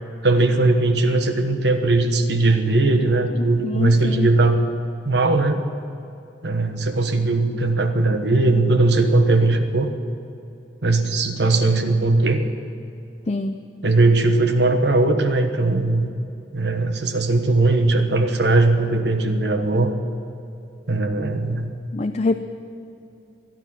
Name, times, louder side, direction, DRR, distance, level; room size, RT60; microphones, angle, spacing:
voice 1, 0.2-4.6 5.0-5.6 6.4-9.9 10.8-12.4 13.8-16.1 16.5-19.9 20.9-21.7, right 2 dB, 70° right, 7 dB, 1.2 m, -19 dB
voice 2, 3.6-4.3 13.3-13.6 21.9-22.4, left 3 dB, 35° left, 7 dB, 0.5 m, -24 dB
24.5 x 9.2 x 6.0 m, 2.7 s
head